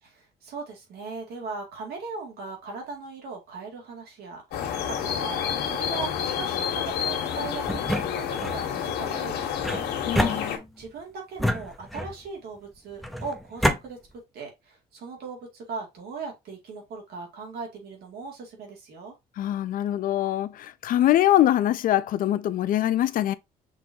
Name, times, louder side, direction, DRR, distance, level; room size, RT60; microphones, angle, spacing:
voice 1, 0.0-10.4 10.8-14.0 14.3-19.1, right 4 dB, 70° right, 2.2 m, -39 dB
sound 1, 4.5-10.6, left 8 dB, 75° left, 1.3 m, -29 dB
sound 2, 7.7-8.6 9.6-10.9 11.4-12.3 13.0-13.8, equal, ahead, 0.6 m, -27 dB
voice 2, 10.1-10.6 19.4-23.3, left 13 dB, 55° left, 0.4 m, -23 dB
6.1 x 3.1 x 2.7 m
cardioid pair, 110°, 17 cm